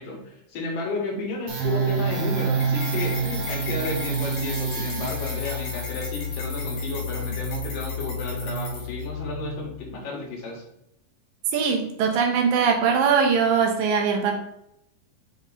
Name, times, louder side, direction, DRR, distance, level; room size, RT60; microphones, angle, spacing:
voice 1, 0.0-10.6, left 3 dB, 75° left, -1 dB, 3.2 m, -32 dB
sound 1, 1.5-9.9, right 3 dB, 65° right, 2.2 m, -29 dB
sound 2, 2.6-9.0, left 4 dB, 60° left, 2.4 m, -39 dB
voice 2, 11.5-14.4, right 6 dB, 85° right, 3 dB, 2.7 m, -21 dB
7.0 x 3.8 x 4.0 m, 0.78 s
omnidirectional pair, 3.9 m